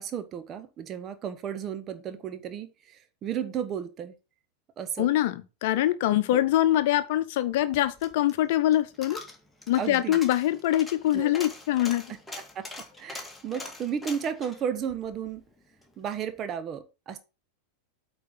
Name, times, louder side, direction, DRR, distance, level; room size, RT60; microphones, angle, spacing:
voice 1, 0.0-4.1 4.8-5.1 6.3-6.4 9.8-10.2 11.1-11.3 12.5-12.6 13.0-15.4 16.0-17.2, right 8 dB, 30° right, 1.2 m, -33 dB
voice 2, 5.0-9.2 9.7-12.1, left 13 dB, 50° left, 0.9 m, -24 dB
Coin (dropping), 7.5-15.9 16.3-16.4, left 2 dB, 5° left, 1.9 m, -43 dB
8.3 x 4.5 x 5.6 m
figure-of-eight pair, 90°, 0 cm